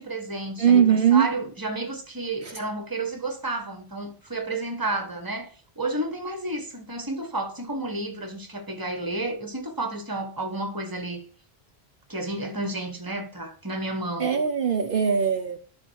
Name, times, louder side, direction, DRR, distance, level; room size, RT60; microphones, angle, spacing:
voice 1, 0.0-5.5 5.8-11.2 12.1-14.3, right 2 dB, 20° right, 1.4 m, -31 dB
voice 2, 0.6-1.3 2.4-2.5 14.2-15.6, right 8 dB, 60° right, 0.9 m, -20 dB
11.0 x 3.7 x 6.3 m
omnidirectional pair, 1.1 m